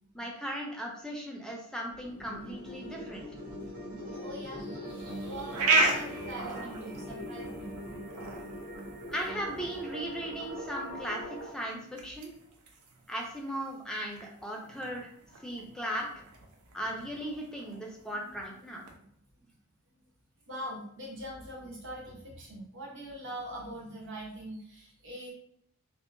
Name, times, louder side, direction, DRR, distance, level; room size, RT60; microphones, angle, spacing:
voice 1, 0.1-3.3 9.1-12.3 13.1-15.1 15.4-16.1 16.7-18.8, equal, 5° left, 0 dB, 0.3 m, -37 dB
sound 1, 1.9-11.5, equal, 90° right, 0.9 m, -41 dB
voice 2, 2.6-2.9 4.2-7.8 10.1-10.2 15.3-15.7 17.6-17.9 18.2-18.5 19.3-19.4 20.5-25.3, right 1 dB, 55° right, -3 dB, 0.8 m, -43 dB
sound 2, 4.9-19.0, right 3 dB, 75° right, 0.4 m, -36 dB
2.7 x 2.1 x 2.5 m, 0.69 s
head